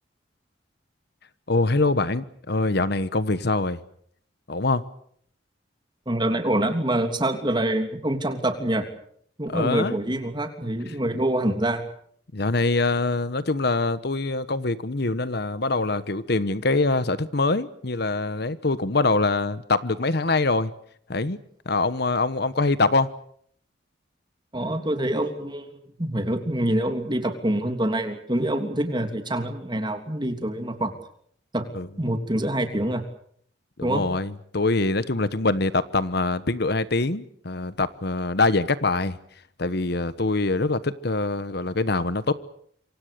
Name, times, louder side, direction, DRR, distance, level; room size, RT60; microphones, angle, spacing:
voice 1, 1.5-3.8 4.5-4.8 9.5-10.0 12.3-20.7 21.1-21.4 21.7-23.1 31.7-31.9 33.8-39.2 39.6-42.3, left 3 dB, 60° left, 1.2 m, -24 dB
voice 2, 6.1-8.9 9.4-11.9 24.5-30.9 31.5-31.7 32.0-33.0 33.8-34.0, right 1 dB, 25° right, 3.1 m, -26 dB
27.0 x 25.0 x 6.8 m
head